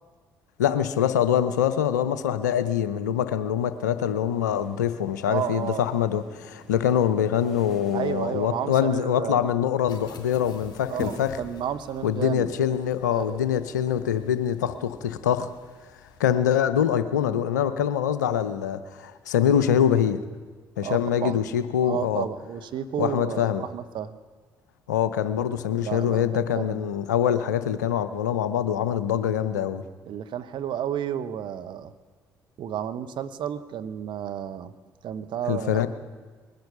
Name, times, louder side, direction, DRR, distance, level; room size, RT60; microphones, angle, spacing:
voice 1, 0.6-11.4 12.0-15.5 16.2-20.2 20.8-22.3 23.0-23.6 24.9-29.8 35.5-35.9, left 9 dB, 90° left, 12 dB, 0.6 m, -24 dB
sound 1, 2.9-9.5, right 1 dB, 5° right, 6.5 m, -52 dB
voice 2, 5.3-5.8 7.9-9.5 10.9-12.5 13.1-13.5 20.8-21.4 21.8-24.2 25.7-26.8 30.0-31.9 32.6-34.7 35.0-35.9, right 9 dB, 60° right, 11 dB, 0.8 m, -32 dB
sound 2, 9.9-16.4, left 6 dB, 55° left, 3.0 m, -44 dB
20.5 x 10.5 x 6.6 m, 1.5 s
hypercardioid pair, 50°, 9 cm